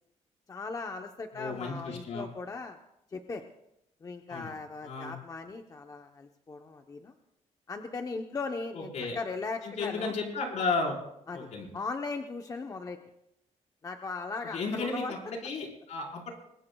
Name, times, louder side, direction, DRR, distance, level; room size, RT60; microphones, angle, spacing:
voice 1, 0.5-2.8 3.1-3.4 4.0-7.1 7.7-10.1 11.3-11.5 11.7-13.0 13.8-15.1, left 4 dB, 30° left, 4 dB, 0.9 m, -38 dB
voice 2, 1.3-2.3 4.3-4.5 4.8-5.1 8.7-9.2 9.6-11.0 11.3-11.7 14.5-16.3, left 3 dB, 70° left, 0 dB, 4.7 m, -33 dB
25.5 x 21.0 x 2.3 m, 0.81 s
cardioid pair, 140°, 12 cm